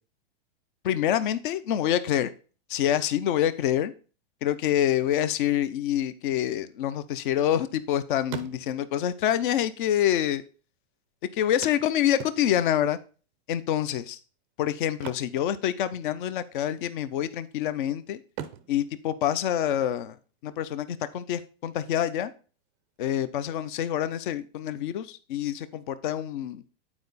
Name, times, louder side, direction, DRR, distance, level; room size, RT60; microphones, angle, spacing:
voice 1, 0.8-2.3 2.7-3.9 4.4-10.4 11.3-13.0 13.5-14.2 14.6-18.2 18.7-20.2 20.4-22.3 23.0-26.6, left 11 dB, 50° left, 14 dB, 0.7 m, -26 dB
sound 1, 6.8-7.9 8.2-9.0 10.0-10.1 10.3-10.4 11.6-12.8 14.9-16.2 16.4-16.7 17.2-17.8 18.3-20.0 22.0-22.1 22.6-22.7, right 11 dB, 20° right, 0.4 m, -42 dB
8.9 x 4.8 x 4.0 m, 0.37 s
supercardioid pair, 160°, 32 cm